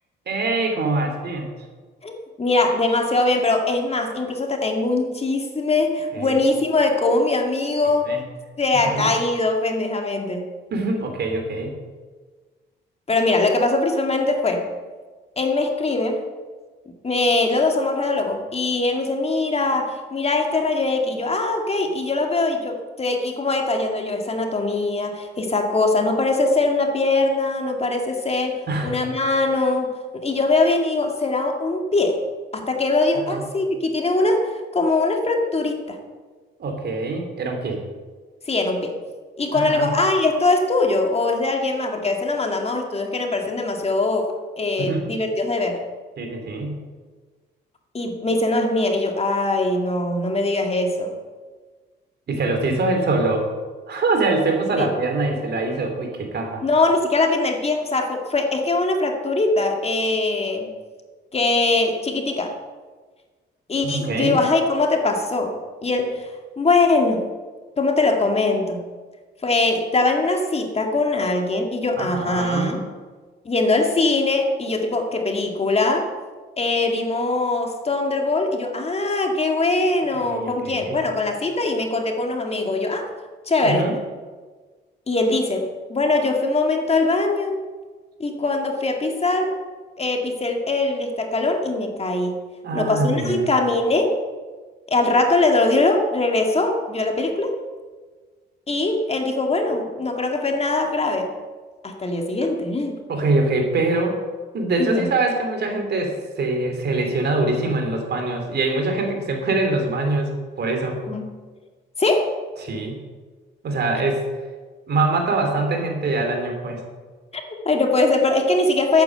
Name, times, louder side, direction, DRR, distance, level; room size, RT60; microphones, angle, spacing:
voice 1, 0.3-1.5 6.1-6.4 8.1-8.2 8.8-9.1 10.7-11.7 28.7-29.0 33.3-33.4 36.6-37.8 39.5-40.0 44.8-45.0 46.2-46.8 52.3-53.5 53.9-56.6 63.8-64.4 72.0-72.8 80.3-81.0 83.6-84.0 92.6-93.5 103.1-104.1 104.5-110.3 110.6-111.0 112.6-113.0 113.6-114.3 114.9-116.8, right 2 dB, 55° right, 4 dB, 3.3 m, -23 dB
voice 2, 2.4-8.1 8.6-10.5 13.1-14.7 15.4-16.2 17.0-32.2 32.5-36.0 38.5-39.0 39.4-44.3 44.6-45.8 47.9-51.1 54.8-54.9 56.6-60.7 61.3-62.5 63.7-65.5 65.8-66.3 66.6-67.2 67.8-68.8 69.4-72.8 73.5-76.1 76.6-83.1 83.5-83.9 85.1-87.6 88.2-89.6 90.0-92.4 92.7-94.1 94.9-97.6 98.7-101.3 101.8-103.0 104.8-105.1 111.1-111.3 112.0-112.3 117.3-119.0, left 2 dB, 30° left, 3 dB, 2.2 m, -22 dB
11.5 x 9.2 x 7.7 m, 1.4 s
cardioid pair, 90°, 20 cm